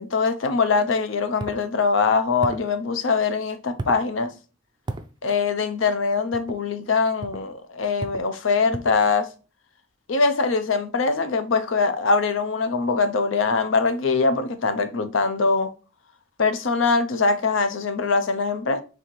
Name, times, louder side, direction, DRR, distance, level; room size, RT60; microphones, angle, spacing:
voice 1, 0.0-4.3 5.2-9.3 10.1-15.7 16.4-18.8, left 4 dB, 80° left, 0.6 m, -22 dB
sound 1, 1.4-1.6 2.4-2.7 3.8-4.1 4.9-5.1 6.3-6.6 7.2-7.5 8.0-8.3 8.7-9.0, right 2 dB, 25° right, 0.3 m, -33 dB
4.1 x 3.4 x 3.1 m
head